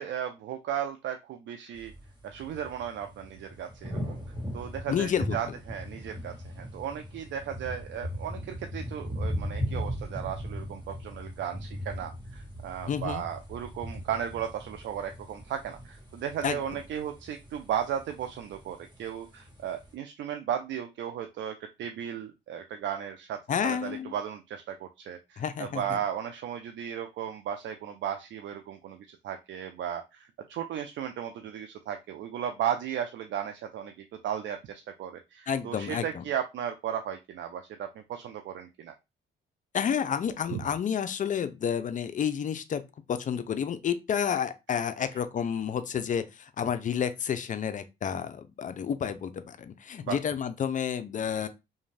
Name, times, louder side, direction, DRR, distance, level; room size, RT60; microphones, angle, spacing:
voice 1, 0.0-1.9 2.2-4.0 4.5-38.9 40.5-40.6 45.0-45.1 50.0-50.2, right 9 dB, 65° right, 0.4 m, -35 dB
sound 1, 1.7-19.9, equal, 20° right, 1.2 m, -39 dB
voice 2, 4.9-5.3 12.9-13.2 16.4-16.6 23.5-24.1 25.4-26.0 35.5-36.2 39.7-42.8 43.1-51.5, left 8 dB, 40° left, 0.4 m, -30 dB
2.5 x 2.1 x 3.2 m
cardioid pair, 90°, 20 cm